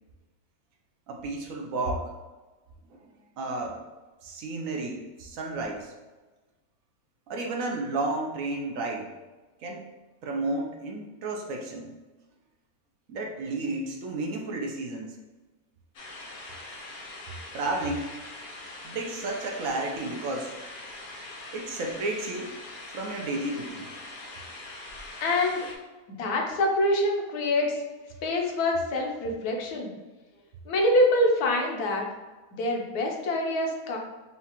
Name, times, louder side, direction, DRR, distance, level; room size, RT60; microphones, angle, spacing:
voice 1, 1.1-2.1 2.9-3.0 3.4-3.8 4.2-5.9 7.3-9.1 9.6-9.9 10.2-11.9 13.1-15.2 17.5-18.1 18.8-20.5 21.5-22.5 22.9-23.9, right 2 dB, 65° right, 1 dB, 0.9 m, -32 dB
sound 1, 15.9-25.7, left 2 dB, 90° left, 0.4 m, -42 dB
voice 2, 25.2-25.7 26.1-27.8 28.2-29.9 30.6-32.1 32.5-34.0, left 1 dB, 70° left, 1 dB, 1.2 m, -25 dB
5.6 x 2.4 x 2.9 m, 1.2 s
omnidirectional pair, 1.7 m